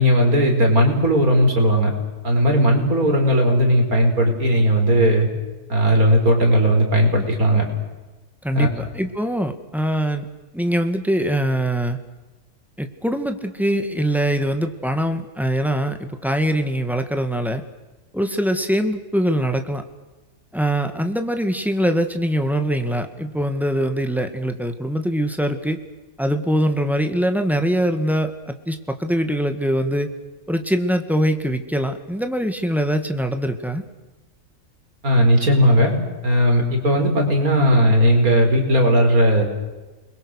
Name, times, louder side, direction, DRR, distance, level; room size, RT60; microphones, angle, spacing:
voice 1, 0.0-1.9 2.2-5.3 5.7-7.6 8.5-8.7 35.0-35.9 36.2-39.4, equal, 70° right, 2 dB, 5.1 m, -17 dB
voice 2, 8.4-10.3 10.5-12.0 12.8-17.6 18.1-19.8 20.5-25.8 26.2-30.1 30.5-33.8, equal, ahead, 6 dB, 1.9 m, -23 dB
29.0 x 22.0 x 6.5 m, 1.2 s
omnidirectional pair, 1.6 m